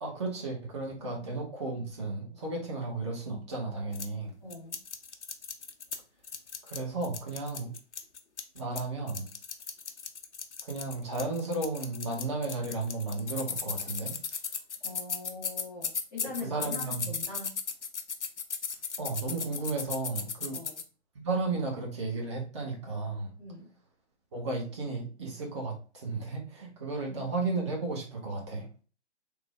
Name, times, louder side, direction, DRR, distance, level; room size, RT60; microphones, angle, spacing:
voice 1, 0.0-4.3 6.6-7.7 8.5-9.3 10.6-14.2 16.4-17.1 19.0-20.6 21.2-23.3 24.3-28.7, right 3 dB, 25° right, -1 dB, 0.8 m, -34 dB
sound 1, 3.9-4.1 4.5-6.0 6.2-8.8 9.1-20.8, left 6 dB, 75° left, 0.6 m, -36 dB
voice 2, 4.4-4.8 14.8-17.6 20.5-20.7 23.4-23.7 27.0-27.3, left 3 dB, ahead, -19 dB, 0.4 m, -42 dB
3.3 x 2.1 x 3.2 m, 0.36 s
figure-of-eight pair, 130°, 35 cm